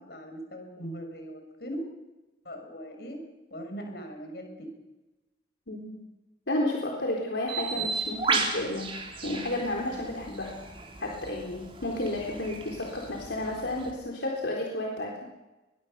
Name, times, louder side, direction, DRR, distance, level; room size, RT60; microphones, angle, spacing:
voice 1, 0.0-1.8 2.4-3.2 3.5-4.7 7.7-7.9, equal, 60° left, 4 dB, 6.3 m, -40 dB
voice 2, 5.7-6.0 6.5-8.9 9.2-10.6 11.0-15.2, left 1 dB, 80° left, -1 dB, 3.9 m, -32 dB
Bird, 7.5-13.9, right 4 dB, 30° right, 3.9 m, -34 dB
22.5 x 22.0 x 6.8 m, 1.1 s
head